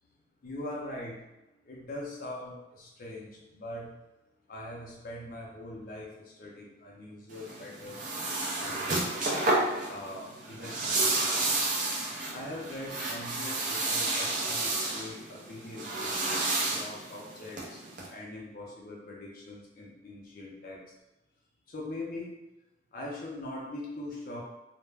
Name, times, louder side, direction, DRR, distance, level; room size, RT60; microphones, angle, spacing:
voice 1, 0.4-1.3 1.6-3.9 4.5-8.1 8.6-9.4 9.9-11.5 12.3-16.2 16.7-17.8 18.1-20.8 21.7-22.4 22.9-24.4, left 1 dB, 50° left, -3 dB, 0.4 m, -42 dB
sound 1, 7.3-18.1, right 2 dB, 45° right, 0.5 m, -31 dB
2.2 x 2.0 x 3.2 m, 0.98 s
head